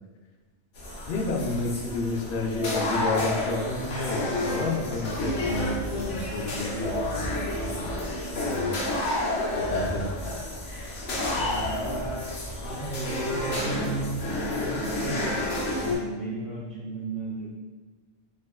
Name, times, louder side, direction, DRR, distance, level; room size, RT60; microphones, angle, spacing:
sound 1, 0.7-16.0, left 1 dB, 80° left, 1.1 m, -30 dB
voice 1, 1.1-7.9 8.3-8.7 9.5-10.1, left 2 dB, 60° left, 0 dB, 0.7 m, -31 dB
sound 2, 5.2-8.2 9.6-10.7 11.2-12.5, left 1 dB, 90° right, 1.1 m, -38 dB
voice 2, 11.5-12.1 12.6-15.4 15.8-17.6, right 2 dB, 50° right, -6 dB, 0.7 m, -34 dB
5.0 x 2.1 x 2.3 m, 1.3 s
omnidirectional pair, 1.2 m